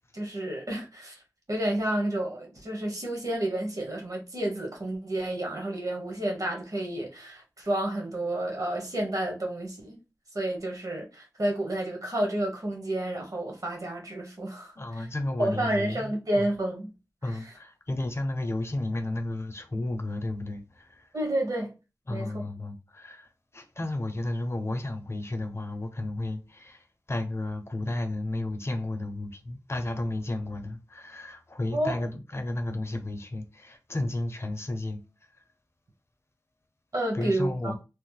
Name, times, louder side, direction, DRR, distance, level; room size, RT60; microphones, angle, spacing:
voice 1, 0.1-1.2 1.5-10.0 10.3-15.1 15.4-16.9 17.3-17.5 21.1-21.7 22.1-22.4 31.7-32.0 36.9-37.7, right 1 dB, 60° right, 1.1 m, -30 dB
voice 2, 14.8-16.5 17.2-21.1 22.1-23.3 23.5-35.0 37.1-37.8, left 1 dB, 40° left, 0.6 m, -33 dB
3.1 x 2.0 x 3.1 m
wide cardioid pair, 65°, 7 cm